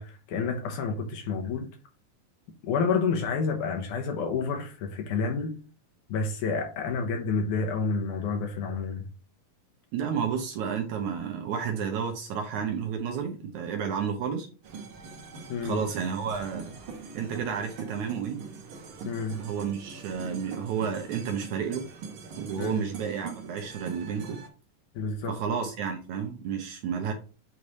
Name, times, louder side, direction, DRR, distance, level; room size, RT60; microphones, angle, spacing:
voice 1, 0.0-1.7 2.6-5.5 6.1-9.1 15.5-15.8 19.1-19.4 22.6-22.8 24.9-25.4, left 5 dB, 70° left, 2.4 m, -29 dB
voice 2, 9.9-14.5 15.6-16.8 17.1-18.4 19.4-21.9 22.4-24.4 25.3-27.1, right 7 dB, 70° right, 2.1 m, -31 dB
Pachinko Band - Japan, 14.6-24.5, right 5 dB, 85° right, 1.1 m, -42 dB
8.5 x 3.2 x 4.1 m
omnidirectional pair, 3.9 m